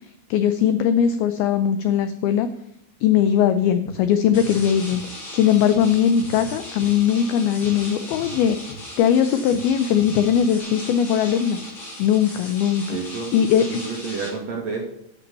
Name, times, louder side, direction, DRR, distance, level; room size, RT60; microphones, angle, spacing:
voice 1, 0.3-2.5 3.0-5.0 5.3-11.6 12.0-13.0 13.3-13.8, left 9 dB, 85° left, 10 dB, 2.1 m, -20 dB
sound 1, 3.5-3.6 3.8-4.1 4.3-5.4 5.7-5.9 6.2-7.3 7.6-7.8 8.1-9.3 9.5-9.7 10.0-10.6, right 2 dB, 60° left, 2.2 m, -42 dB
sound 2, 4.3-14.3, left 1 dB, 30° left, 4.4 m, -38 dB
voice 2, 12.9-13.3 13.7-14.8, right 4 dB, 50° right, -1 dB, 2.4 m, -30 dB
11.0 x 7.5 x 5.4 m, 0.80 s
omnidirectional pair, 5.2 m